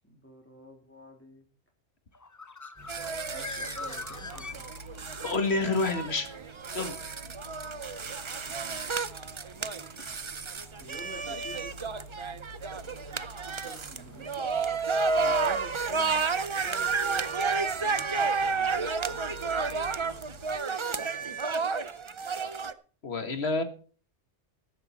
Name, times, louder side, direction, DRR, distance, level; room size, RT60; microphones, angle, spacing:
voice 1, 0.0-1.4 3.3-4.7 8.5-8.9 10.7-11.7 13.4-14.8 15.2-17.3 17.8-18.8 20.9-21.4, equal, 10° left, 1 dB, 3.4 m, -49 dB
Bird, 2.1-5.2, left 3 dB, 30° left, 0.3 m, -41 dB
sound 1, 2.8-20.6, right 1 dB, 15° right, 7.4 m, -49 dB
sound 2, 2.9-22.7, right 4 dB, 35° right, 0.5 m, -31 dB
voice 2, 5.2-6.3 6.7-6.9 10.0-10.2 23.0-23.6, left 3 dB, 60° left, 8 dB, 1.9 m, -28 dB
14.0 x 11.5 x 4.2 m, 0.41 s
omnidirectional pair, 1.2 m